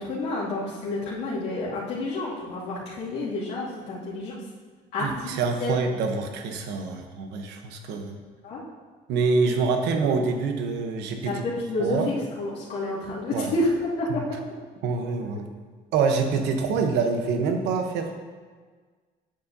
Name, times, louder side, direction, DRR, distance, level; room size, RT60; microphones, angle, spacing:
voice 1, 0.0-4.3 4.9-5.7 8.4-8.6 11.3-14.1, left 2 dB, 85° left, -8 dB, 2.4 m, -29 dB
voice 2, 5.0-8.2 9.1-11.4 11.8-12.1 13.3-13.5 14.1-14.2 14.8-15.5 15.9-18.2, right 4 dB, 85° right, 4 dB, 0.9 m, -26 dB
8.9 x 7.3 x 2.7 m, 1.5 s
cardioid pair, 110°, 17 cm